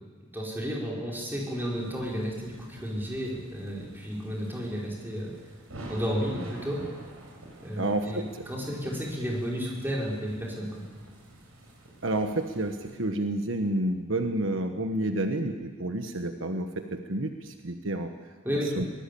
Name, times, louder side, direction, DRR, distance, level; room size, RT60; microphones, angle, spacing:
voice 1, 0.3-5.3 5.9-6.8 7.6-10.8 18.4-18.7, equal, 10° right, -3 dB, 5.2 m, -32 dB
sound 1, 1.3-13.0, right 1 dB, 80° right, 7.6 m, -48 dB
voice 2, 7.8-8.4 8.8-8.9 12.0-18.1 18.7-18.8, right 1 dB, 65° right, 6 dB, 1.4 m, -30 dB
22.5 x 20.0 x 8.6 m, 1.4 s
head